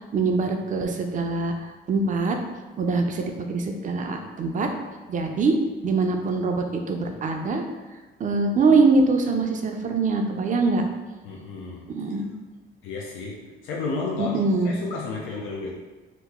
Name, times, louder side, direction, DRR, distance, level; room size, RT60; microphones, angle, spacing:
voice 1, 0.1-1.5 1.9-2.4 2.8-4.7 5.1-5.6 5.8-7.6 8.2-10.8 11.9-12.3 14.2-14.7, right 3 dB, 40° right, 4 dB, 0.4 m, -23 dB
voice 2, 11.2-12.0 12.8-15.7, left 3 dB, 90° left, -2 dB, 0.4 m, -32 dB
2.9 x 2.0 x 3.5 m, 1.2 s
cardioid pair, 90°, 20 cm